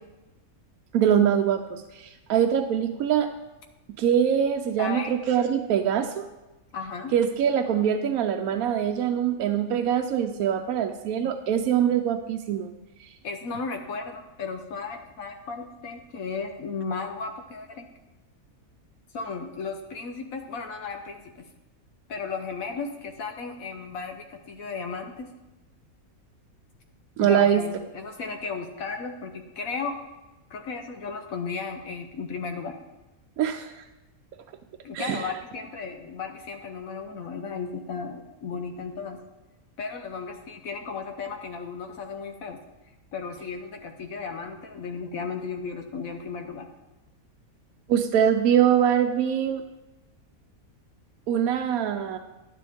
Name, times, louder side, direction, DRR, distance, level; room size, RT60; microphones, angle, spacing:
voice 1, 0.9-3.3 4.0-6.3 7.1-12.7 27.2-27.6 33.4-33.7 34.9-35.2 47.9-49.6 51.3-52.2, right 9 dB, 80° right, 5 dB, 1.0 m, -23 dB
voice 2, 4.8-5.1 6.7-7.1 11.2-11.4 13.2-17.9 19.1-21.5 22.1-25.3 27.2-30.0 30.5-32.8 34.8-39.2 39.8-42.6 43.1-46.7, left 5 dB, 75° left, 5 dB, 1.2 m, -35 dB
11.0 x 9.8 x 3.5 m, 1.0 s
omnidirectional pair, 1.5 m